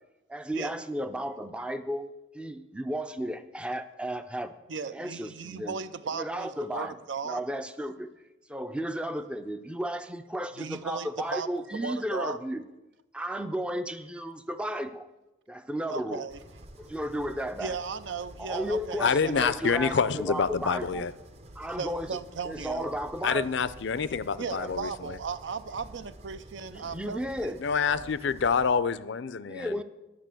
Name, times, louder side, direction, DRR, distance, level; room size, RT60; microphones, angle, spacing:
voice 1, 0.3-4.6 4.9-5.8 6.1-7.0 7.2-8.1 8.5-12.7 13.1-15.1 15.5-16.3 16.8-17.8 18.4-21.1 21.6-22.2 22.4-23.5 24.5-24.7 26.7-27.6 29.4-29.8, equal, 5° right, 10 dB, 0.4 m, -34 dB
voice 2, 4.7-7.4 10.6-12.4 15.9-16.4 17.6-19.8 21.8-22.9 24.4-28.1, right 5 dB, 70° right, 12 dB, 0.5 m, -36 dB
sound 1, 16.3-28.7, right 1 dB, 35° right, 0.8 m, -50 dB
voice 3, 19.0-21.1 23.2-25.2 27.6-29.7, left 6 dB, 65° left, 16 dB, 0.5 m, -27 dB
10.5 x 6.5 x 7.6 m, 1.0 s
head